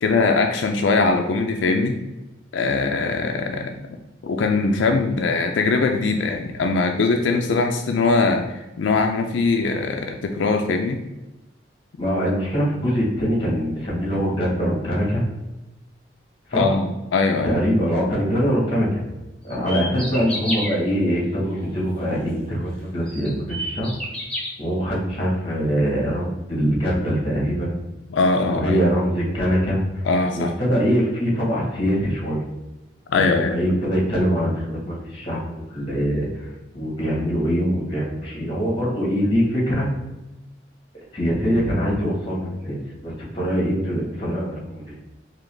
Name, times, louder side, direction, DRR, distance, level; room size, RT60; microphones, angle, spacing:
voice 1, 0.0-2.0 2.5-3.9 4.2-11.0 16.5-17.6 28.1-28.8 30.0-30.5 33.1-33.6, left 3 dB, 85° left, 4 dB, 0.4 m, -21 dB
voice 2, 12.0-15.2 16.5-16.8 17.4-19.0 19.4-23.9 24.6-27.7 28.4-30.0 30.3-32.4 33.1-39.9 41.1-45.0, equal, 30° left, -4 dB, 1.5 m, -23 dB
sound 1, 19.5-20.7 22.4-22.5 23.1-24.5, equal, 5° left, 0.7 m, -29 dB
3.8 x 2.9 x 3.3 m, 1.0 s
head